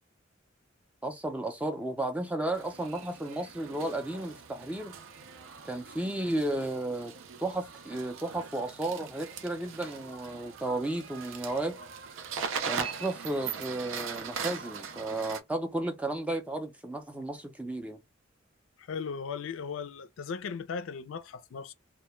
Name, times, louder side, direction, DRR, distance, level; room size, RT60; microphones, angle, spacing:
voice 1, 1.0-4.9 5.6-7.1 7.4-11.8 12.6-18.0, right 1 dB, 5° right, 0.4 m, -33 dB
sound 1, 2.5-15.4, right 6 dB, 85° right, 0.4 m, -40 dB
voice 2, 18.8-21.7, left 6 dB, 80° left, 0.4 m, -37 dB
2.1 x 2.1 x 3.0 m
head